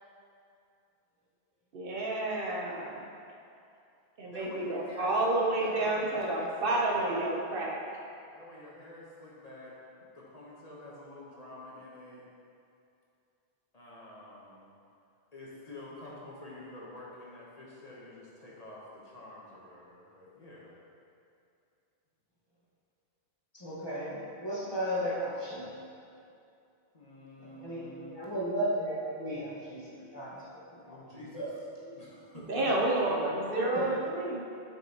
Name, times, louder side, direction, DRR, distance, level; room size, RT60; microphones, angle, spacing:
voice 1, 1.7-3.1 4.2-7.8 32.5-34.4, right 2 dB, 65° right, -2 dB, 0.9 m, -30 dB
voice 2, 4.3-7.3 8.3-9.8 10.1-12.2 13.7-14.7 15.3-20.7 26.9-28.2 30.9-31.5 31.9-32.6, left 1 dB, 40° left, -6 dB, 0.9 m, -48 dB
voice 3, 23.5-25.7 27.4-32.0 32.5-32.7 33.0-33.9, equal, 25° left, -8 dB, 1.3 m, -36 dB
7.5 x 5.3 x 2.8 m, 2.6 s
omnidirectional pair, 1.1 m